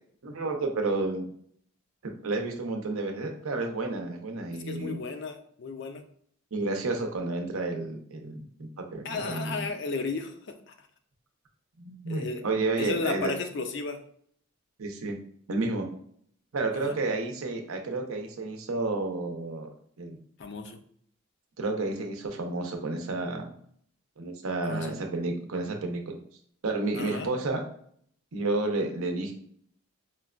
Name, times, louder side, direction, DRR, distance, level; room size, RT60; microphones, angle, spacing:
voice 1, 0.2-1.3 2.0-5.0 6.5-9.7 11.8-13.3 14.8-15.2 15.5-15.9 16.5-19.7 20.0-20.2 21.6-23.5 24.2-26.2 26.6-27.6 28.3-29.3, right 3 dB, 80° right, 3 dB, 0.6 m, -31 dB
voice 2, 4.5-6.0 9.0-10.7 12.1-12.4 12.8-14.0 16.8-17.0 20.4-20.8 24.7-24.9 27.0-27.3, left 4 dB, 55° left, 6 dB, 0.4 m, -34 dB
4.4 x 2.2 x 2.4 m, 0.62 s
head